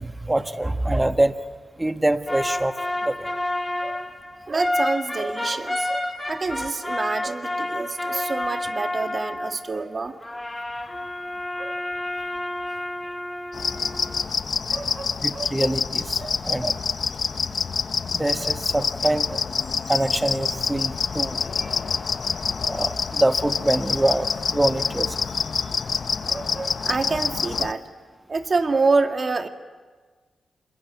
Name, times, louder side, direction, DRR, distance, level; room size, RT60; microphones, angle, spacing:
voice 1, 0.0-1.3 1.8-2.7 3.0-3.3 15.2-16.2 16.4-16.8 18.1-19.3 19.9-21.7 22.7-25.2, right 1 dB, 20° right, 9 dB, 1.6 m, -24 dB
sound 1, 2.3-9.8 10.2-14.3, left 1 dB, 15° left, 2.6 m, -29 dB
voice 2, 4.5-10.1 11.5-11.8 14.7-15.6 16.2-16.4 18.4-18.6 19.0-19.1 26.3-27.9 28.3-29.5, right 3 dB, 45° right, 7 dB, 2.0 m, -27 dB
sound 2, 13.5-27.7, left 5 dB, 60° left, 0.9 m, -27 dB
27.5 x 21.5 x 9.5 m, 1.4 s
supercardioid pair, 50°, 0 cm